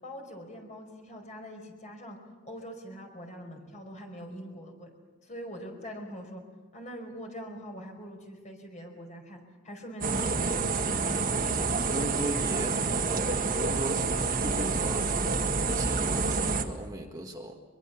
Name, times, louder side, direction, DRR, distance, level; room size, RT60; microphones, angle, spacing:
voice 1, 0.0-2.2 2.4-4.9 5.2-6.4 6.7-11.2, equal, 35° left, 3 dB, 5.1 m, -43 dB
sound 1, 10.0-16.6, right 4 dB, 45° right, 1.7 m, -28 dB
voice 2, 11.9-15.1 15.7-17.5, right 1 dB, 20° right, 1 dB, 1.6 m, -37 dB
24.0 x 22.5 x 7.3 m, 1.3 s
head